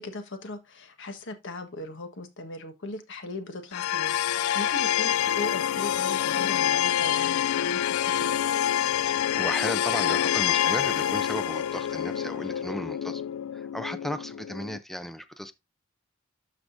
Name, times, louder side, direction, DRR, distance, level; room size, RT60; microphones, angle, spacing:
voice 1, 0.0-8.3, left 2 dB, 60° left, 1.4 m, -39 dB
sound 1, 3.7-14.8, left 10 dB, 90° left, 0.3 m, -26 dB
voice 2, 9.0-13.2 13.5-15.5, equal, ahead, 0.5 m, -35 dB
12.5 x 5.0 x 2.6 m
head